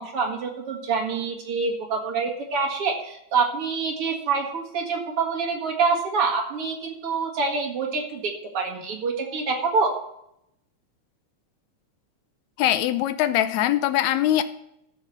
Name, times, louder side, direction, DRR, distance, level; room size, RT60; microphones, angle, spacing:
voice 1, 0.0-9.9, right 4 dB, 50° right, 1 dB, 2.6 m, -26 dB
voice 2, 12.6-14.4, left 12 dB, 80° left, 12 dB, 2.0 m, -22 dB
13.5 x 5.8 x 6.7 m, 0.77 s
omnidirectional pair, 3.4 m